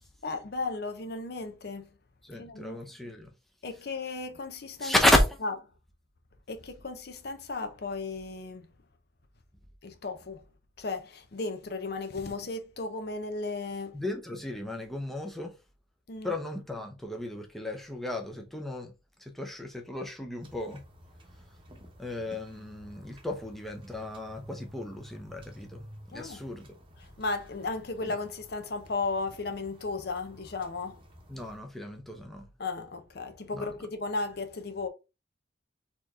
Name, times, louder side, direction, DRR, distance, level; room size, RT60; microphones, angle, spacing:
voice 1, 0.2-1.9 2.4-2.8 3.6-4.9 5.4-5.5 6.5-8.7 9.8-10.4 10.8-14.0 16.1-16.4 26.1-26.4 27.0-31.0 32.6-34.9, left 3 dB, 60° left, 0.7 m, -35 dB
voice 2, 2.2-3.3 4.8-5.4 13.9-15.5 16.2-18.9 19.2-20.8 22.0-26.7 31.3-32.5 33.5-33.7, left 1 dB, ahead, 0.6 m, -32 dB
sound 1, 20.4-31.6, equal, 30° right, 0.9 m, -52 dB
4.3 x 3.0 x 3.6 m
head